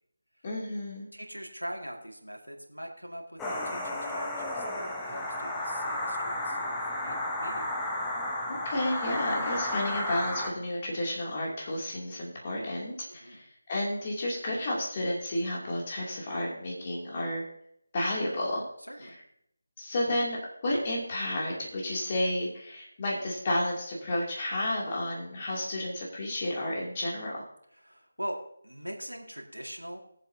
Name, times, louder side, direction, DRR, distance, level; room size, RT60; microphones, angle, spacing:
voice 1, 0.4-1.1 8.5-17.4 17.9-18.6 19.8-27.4, left 1 dB, 30° left, -3 dB, 2.6 m, -31 dB
voice 2, 1.1-7.7 13.1-13.4 18.8-19.2 27.8-28.4 28.6-30.0, equal, 90° right, 1 dB, 2.1 m, -42 dB
sound 1, 3.4-10.5, left 1 dB, 5° left, 1.1 m, -33 dB
20.5 x 7.5 x 2.8 m, 0.74 s
figure-of-eight pair, 160°, 0 cm